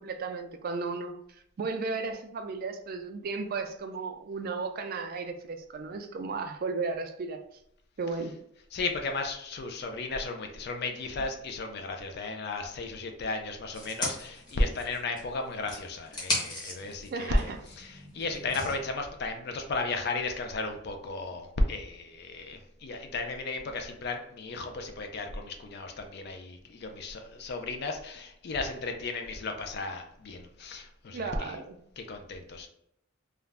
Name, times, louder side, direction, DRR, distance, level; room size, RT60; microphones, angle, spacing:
voice 1, 0.0-7.4 8.0-8.4 17.1-17.6 31.1-31.8, right 4 dB, 45° right, 6 dB, 0.3 m, -34 dB
voice 2, 8.7-17.5 17.8-31.5 32.0-32.7, left 2 dB, 55° left, 5 dB, 0.4 m, -34 dB
sound 1, 13.7-15.3 15.6-18.8, left 1 dB, 20° left, 0.8 m, -36 dB
2.4 x 2.1 x 3.2 m, 0.75 s
head